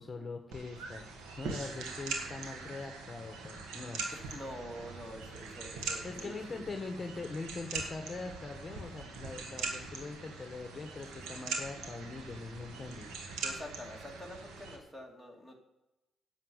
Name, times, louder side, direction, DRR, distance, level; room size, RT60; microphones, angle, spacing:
voice 1, 0.0-4.0 6.0-13.1, left 3 dB, 25° left, 4 dB, 1.3 m, -42 dB
sound 1, 0.5-14.8, right 3 dB, 90° right, 2.0 m, -42 dB
voice 2, 4.1-6.6 13.4-15.6, equal, 5° right, 2 dB, 3.0 m, -46 dB
10.5 x 7.4 x 8.0 m, 0.97 s
cardioid pair, 90°, 0 cm